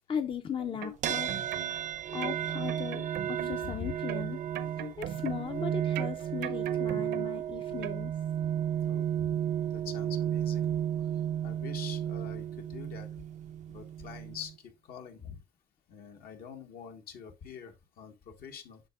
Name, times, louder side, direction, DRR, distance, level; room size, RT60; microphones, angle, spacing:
voice 1, 0.1-1.3 1.7-4.4 4.8-8.1, left 7 dB, 30° left, 0.6 m, -38 dB
sound 1, 0.6-1.9 2.2-3.7 4.1-5.6 5.9-7.5 7.8-8.0, right 8 dB, 75° right, 0.8 m, -40 dB
sound 2, 1.0-14.5, right 10 dB, 45° right, 0.4 m, -33 dB
voice 2, 3.6-3.9 5.2-5.5 8.8-9.4 9.7-10.8 11.4-13.1 13.7-15.4 15.9-18.8, left 7 dB, 65° left, 1.5 m, -45 dB
7.9 x 5.9 x 2.4 m
cardioid pair, 110°, 17 cm